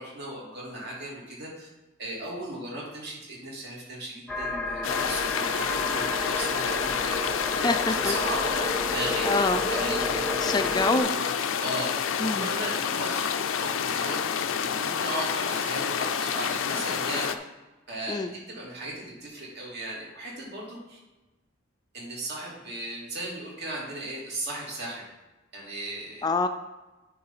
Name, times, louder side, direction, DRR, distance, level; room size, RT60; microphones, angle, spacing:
voice 1, 0.0-1.7 2.0-7.2 7.6-9.3 9.7-13.3 13.6-14.2 14.8-17.3 17.9-21.0 21.9-25.0 25.5-26.2, right 1 dB, 55° right, -4 dB, 2.9 m, -36 dB
sound 1, 4.3-11.0, left 1 dB, 5° left, 0.8 m, -32 dB
sound 2, 4.8-17.4, left 7 dB, 85° left, 0.5 m, -28 dB
voice 2, 7.6-8.1 9.2-9.6 10.4-11.4 12.2-12.5 18.1-18.3 26.2-26.5, left 3 dB, 20° left, 8 dB, 0.3 m, -26 dB
9.5 x 3.8 x 5.7 m, 1.1 s
head